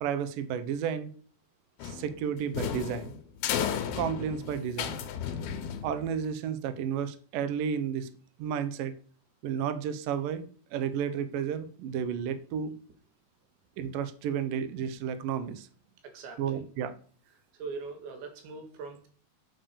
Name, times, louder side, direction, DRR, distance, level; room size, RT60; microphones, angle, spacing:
voice 1, 0.0-1.1 1.8-3.2 4.0-5.0 5.8-8.1 8.4-8.9 9.4-10.4 10.7-12.7 13.8-15.7 16.4-16.9, right 8 dB, 65° right, 11 dB, 2.4 m, -32 dB
sound 1, 1.8-6.3, left 8 dB, 70° left, 2.8 m, -34 dB
voice 2, 16.0-16.6 17.3-19.1, right 4 dB, 85° right, 5 dB, 4.3 m, -42 dB
8.5 x 8.1 x 7.0 m, 0.44 s
omnidirectional pair, 5.0 m